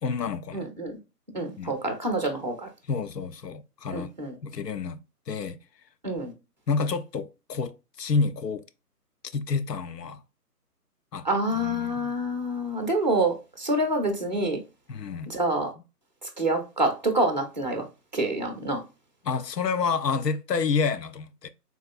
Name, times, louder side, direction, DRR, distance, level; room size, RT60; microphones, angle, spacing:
voice 1, 0.0-0.7 1.6-1.8 2.9-4.1 4.4-5.0 5.3-5.6 6.7-8.6 9.3-10.2 11.1-11.3 11.5-12.1 14.9-15.3 19.2-21.5, left 5 dB, 85° left, 0.6 m, -29 dB
voice 2, 0.5-1.0 1.3-2.7 3.9-4.3 6.0-6.3 11.2-14.6 15.3-15.7 16.4-17.8 18.1-18.8, right 1 dB, 30° right, 0.5 m, -27 dB
3.6 x 2.7 x 2.3 m
figure-of-eight pair, 140°, 48 cm